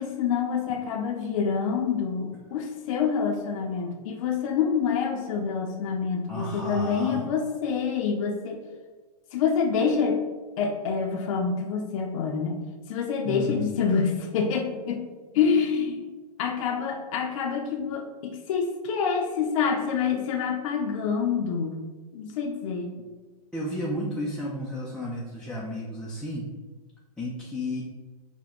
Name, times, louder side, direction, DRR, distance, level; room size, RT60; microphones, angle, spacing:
voice 1, 0.0-8.6 9.3-10.2 10.6-12.6 12.9-15.0 15.3-16.1 16.4-21.8 22.1-22.9, left 6 dB, 55° left, 2 dB, 0.6 m, -27 dB
voice 2, 6.3-7.2 13.2-13.7 23.5-26.5 27.2-27.8, equal, 5° left, -5 dB, 0.4 m, -32 dB
4.3 x 2.2 x 4.2 m, 1.3 s
hypercardioid pair, 130°, 20 cm